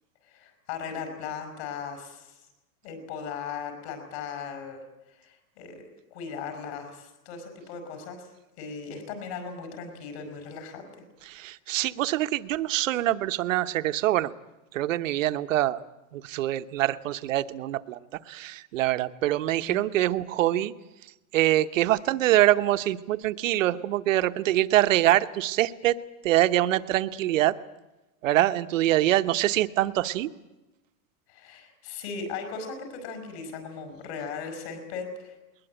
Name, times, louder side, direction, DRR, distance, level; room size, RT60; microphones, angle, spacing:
voice 1, 0.3-2.4 2.8-4.8 5.1-8.3 8.6-10.9 19.6-19.8 31.3-35.3, left 5 dB, 45° left, 6 dB, 6.5 m, -38 dB
voice 2, 11.2-14.3 14.7-15.8 16.1-18.0 18.3-20.7 21.3-26.0 26.2-27.6 28.2-30.3, right 14 dB, 60° right, 11 dB, 1.1 m, -24 dB
21.0 x 20.5 x 9.0 m, 1.0 s
supercardioid pair, 170°, 45 cm